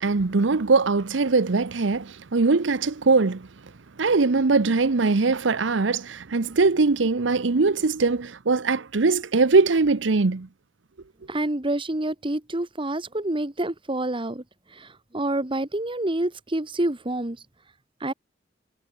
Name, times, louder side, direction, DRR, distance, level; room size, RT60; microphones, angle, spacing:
voice 1, 0.0-3.4 4.0-10.5, right 3 dB, 85° right, 0.8 m, -21 dB
voice 2, 11.3-14.4 14.8-14.9 15.1-17.4 18.0-18.1, right 1 dB, 30° right, 1.6 m, -27 dB
head